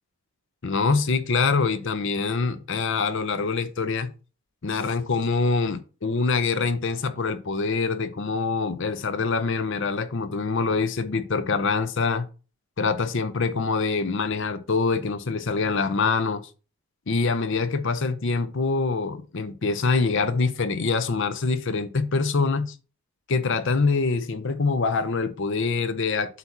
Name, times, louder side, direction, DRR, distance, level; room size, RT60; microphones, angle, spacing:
voice 1, 0.6-4.1 4.6-12.3 12.8-16.4 17.1-22.7 23.3-26.4, left 4 dB, 55° left, 0.6 m, -25 dB
7.9 x 2.9 x 5.8 m
head